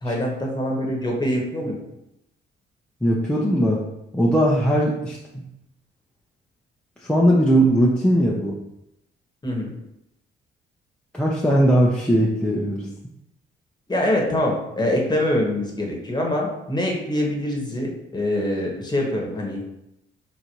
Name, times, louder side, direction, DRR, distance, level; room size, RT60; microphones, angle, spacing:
voice 1, 0.0-1.8 9.4-9.7 13.9-19.6, left 1 dB, 20° left, -1 dB, 1.2 m, -24 dB
voice 2, 3.0-3.8 4.1-5.2 7.0-8.6 11.1-12.9, equal, 5° left, -4 dB, 0.6 m, -19 dB
3.9 x 2.7 x 4.5 m, 0.85 s
cardioid pair, 90°, 20 cm